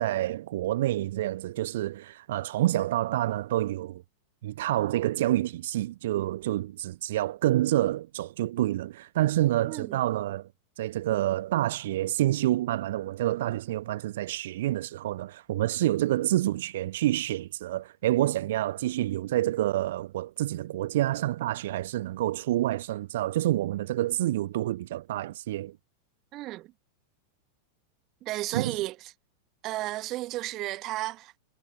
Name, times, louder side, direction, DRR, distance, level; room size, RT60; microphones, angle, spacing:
voice 1, 0.0-4.0 4.4-10.5 10.8-25.8 28.5-28.8, right 14 dB, 55° right, 0.9 m, -28 dB
voice 2, 9.6-10.0 26.3-26.7 28.2-29.1 29.6-31.4, right 17 dB, 35° right, 1.1 m, -33 dB
figure-of-eight pair, 90°, 0 cm